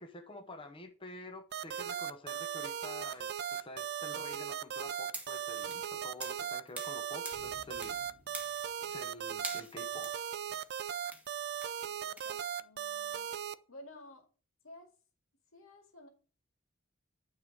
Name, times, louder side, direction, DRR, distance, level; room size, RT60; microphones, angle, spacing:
voice 1, 0.0-8.0 8.8-10.3, left 2 dB, 25° left, 0.7 m, -49 dB
sound 1, 1.5-13.5, right 9 dB, 55° right, 0.4 m, -38 dB
sound 2, 2.8-3.9 5.5-6.0 6.2-6.5 7.3-9.6, left 1 dB, 55° left, 2.2 m, -62 dB
sound 3, 5.1-7.0 7.2-8.0 8.3-9.1 9.4-12.4, right 2 dB, 10° right, 1.4 m, -46 dB
voice 2, 11.9-13.3 13.7-14.3 14.6-14.9 15.5-16.1, left 1 dB, 80° left, 2.0 m, -54 dB
9.0 x 3.7 x 6.1 m
head